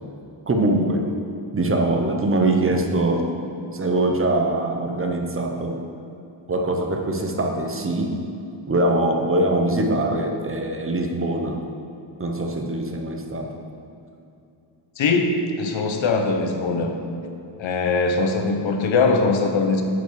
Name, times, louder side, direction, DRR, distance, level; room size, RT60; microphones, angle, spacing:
voice 1, 0.5-1.2 1.5-3.3 3.7-5.8 6.5-8.2 8.7-11.6 12.2-13.5, right 2 dB, 30° right, 3 dB, 0.6 m, -22 dB
voice 2, 15.0-16.9 17.6-19.8, left 3 dB, 85° left, 5 dB, 0.9 m, -21 dB
9.1 x 5.6 x 4.7 m, 2.7 s
wide cardioid pair, 170°, 45 cm